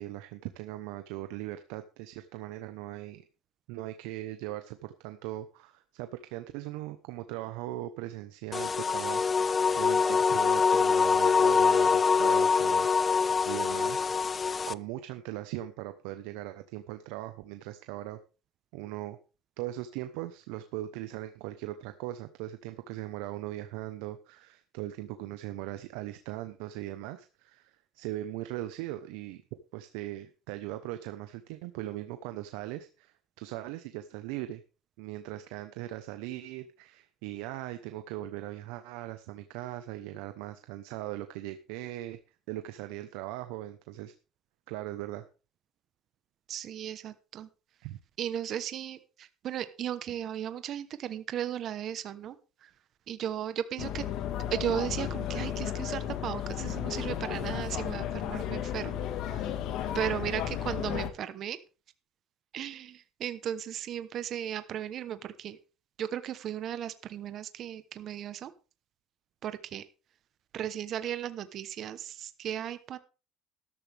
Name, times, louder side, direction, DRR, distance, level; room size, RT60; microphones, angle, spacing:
voice 1, 0.0-3.2 3.7-14.1 14.7-18.2 18.7-19.2 19.6-29.4 29.7-34.6 35.0-42.2 42.5-44.1 44.7-45.2 47.8-48.0, right 15 dB, 85° right, 9 dB, 1.0 m, -39 dB
sound 1, 8.5-14.7, left 5 dB, 20° left, 0.5 m, -24 dB
voice 2, 46.5-47.5 48.2-52.4 52.6-52.7 53.1-54.0 54.5-59.5 59.9-61.6 62.5-65.6 66.0-68.5 69.4-69.8 70.5-73.0, right 10 dB, 45° right, 12 dB, 1.0 m, -36 dB
sound 2, 53.8-61.1, left 10 dB, 60° left, 1.7 m, -34 dB
13.0 x 12.5 x 3.5 m, 0.33 s
cardioid pair, 135°, 0 cm